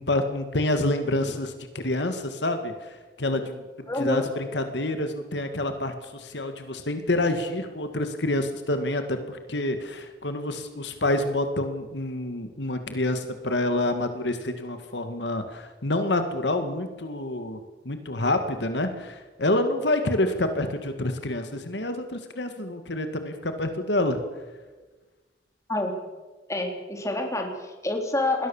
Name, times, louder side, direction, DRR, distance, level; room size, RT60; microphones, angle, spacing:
voice 1, 0.0-3.6 3.9-17.6 17.8-24.2, left 1 dB, 75° left, 7 dB, 2.1 m, -27 dB
voice 2, 3.9-4.3 25.7-25.9 26.5-28.5, left 2 dB, 20° left, 3 dB, 3.8 m, -27 dB
27.0 x 20.0 x 7.3 m, 1.3 s
head